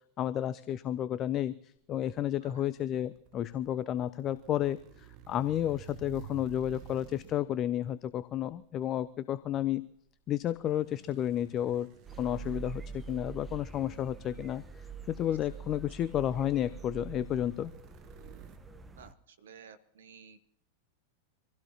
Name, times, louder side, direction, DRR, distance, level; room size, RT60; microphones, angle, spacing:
voice 1, 0.2-9.9 10.3-11.9 12.2-14.6 15.1-17.7, left 11 dB, 30° left, 16 dB, 0.5 m, -32 dB
sound 1, 1.9-7.6 8.4-8.6 10.5-14.3 14.9-15.0 15.3-18.6, right 8 dB, 40° right, 1.4 m, -53 dB
sound 2, 12.0-19.1, right 6 dB, 15° right, 1.2 m, -45 dB
voice 2, 19.0-20.4, right 6 dB, 65° right, 10 dB, 1.0 m, -53 dB
25.5 x 16.0 x 2.8 m, 0.73 s
figure-of-eight pair, 90°, 0 cm